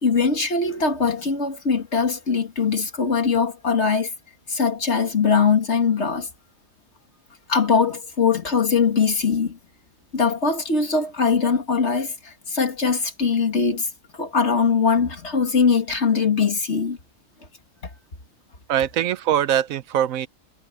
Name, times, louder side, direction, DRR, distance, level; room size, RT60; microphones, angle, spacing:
voice 1, 0.0-4.1 4.5-6.3 7.5-9.6 10.1-17.0, left 5 dB, 55° left, 2.4 m, -21 dB
voice 2, 18.7-20.3, right 10 dB, 80° right, 1.1 m, -22 dB
omnidirectional pair, 1.4 m